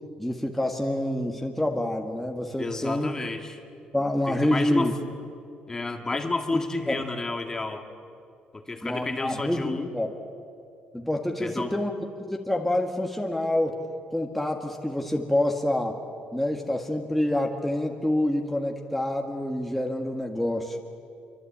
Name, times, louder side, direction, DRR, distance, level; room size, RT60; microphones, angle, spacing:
voice 1, 0.2-3.1 3.9-4.9 6.5-6.6 6.9-7.0 8.8-10.1 10.9-11.9 12.2-13.8 14.1-16.0 16.3-20.8, left 1 dB, 5° left, 1 dB, 1.8 m, -27 dB
voice 2, 2.6-3.6 4.3-5.1 5.7-7.9 8.5-9.9 11.4-11.7, left 3 dB, 20° left, 5 dB, 1.9 m, -31 dB
25.5 x 24.5 x 8.7 m, 2.5 s
cardioid pair, 120°, 3 cm